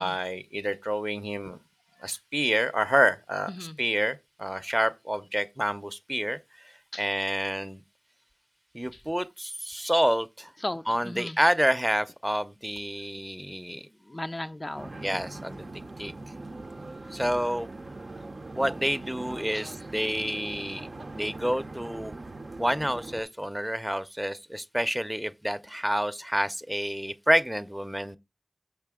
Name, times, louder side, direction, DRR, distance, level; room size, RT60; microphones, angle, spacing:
voice 1, 0.0-1.6 2.0-7.8 8.7-10.5 10.8-13.9 15.0-15.7 16.0-16.1 17.1-17.7 18.5-20.9 21.1-22.1 22.6-28.2, equal, 10° right, 0.6 m, -28 dB
voice 2, 3.5-3.8 6.9-7.1 8.9-9.0 10.6-11.4 14.1-15.0 17.0-17.1 19.5-19.7, left 1 dB, 35° left, 0.3 m, -37 dB
sound 1, 14.8-23.2, right 2 dB, 75° right, 0.6 m, -41 dB
6.6 x 5.5 x 3.6 m
wide cardioid pair, 55°, 0 cm